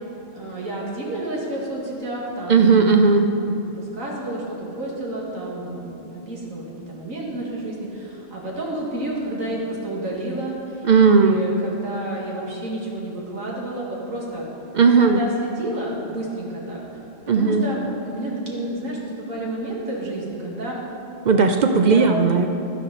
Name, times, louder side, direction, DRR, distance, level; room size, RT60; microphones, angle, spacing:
voice 1, 0.3-3.3 3.6-14.5 14.9-20.8 21.7-22.1, right 1 dB, 90° right, -3 dB, 2.3 m, -30 dB
voice 2, 2.5-3.3 10.9-11.4 14.7-15.2 17.3-17.6 21.2-22.5, right 5 dB, 65° right, 6 dB, 0.4 m, -16 dB
12.0 x 10.0 x 4.1 m, 3.0 s
omnidirectional pair, 1.3 m